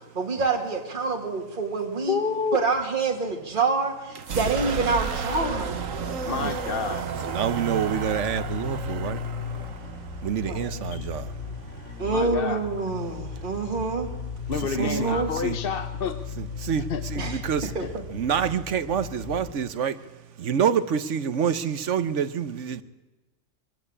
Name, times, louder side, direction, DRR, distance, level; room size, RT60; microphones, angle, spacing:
voice 1, 0.1-2.2 2.5-5.9 10.5-10.6 12.0-14.1 14.7-15.3 17.2-17.4 17.7-18.0, right 4 dB, 40° right, 1 dB, 2.1 m, -27 dB
voice 2, 2.1-2.7 6.3-7.1 10.9-11.1 12.1-12.6 14.5-16.2 16.9-17.0 17.8-17.9, left 5 dB, 50° left, 9 dB, 1.0 m, -29 dB
sound 1, 4.1-11.8, right 6 dB, 85° right, 1.5 m, -33 dB
sound 2, 5.5-19.5, left 5 dB, 65° left, 2.9 m, -36 dB
voice 3, 7.2-9.2 10.2-11.3 14.7-15.2 15.4-15.6 16.4-17.7 18.1-20.0 20.4-22.8, right 7 dB, 70° right, 13 dB, 1.2 m, -27 dB
23.0 x 15.0 x 8.7 m, 1.2 s
omnidirectional pair, 1.3 m